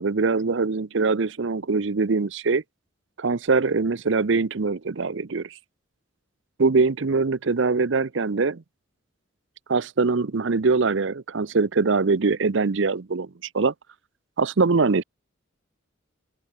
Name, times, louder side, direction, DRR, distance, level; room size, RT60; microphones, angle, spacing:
voice 1, 0.0-2.6 3.2-5.5 6.6-8.6 9.7-13.3 13.5-13.7 14.4-15.0, right 4 dB, 65° right, 0.7 m, -22 dB
open air
head